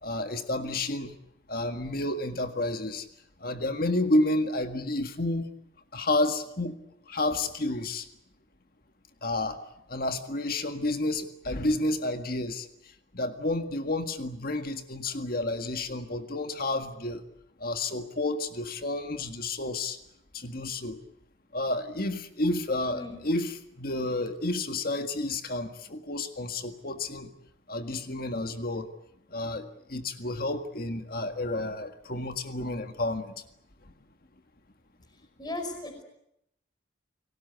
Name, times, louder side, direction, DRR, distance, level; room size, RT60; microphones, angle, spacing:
voice 1, 0.0-1.1 1.5-3.0 3.4-5.5 5.9-6.8 7.1-8.1 9.2-9.6 9.9-12.7 13.1-17.2 17.6-20.0 20.3-21.0 21.5-27.3 27.7-28.9 29.3-33.3, left 2 dB, 50° left, 7 dB, 1.8 m, -30 dB
voice 2, 35.4-36.0, left 2 dB, 20° left, 6 dB, 5.1 m, -36 dB
29.5 x 19.5 x 8.1 m, 0.81 s
head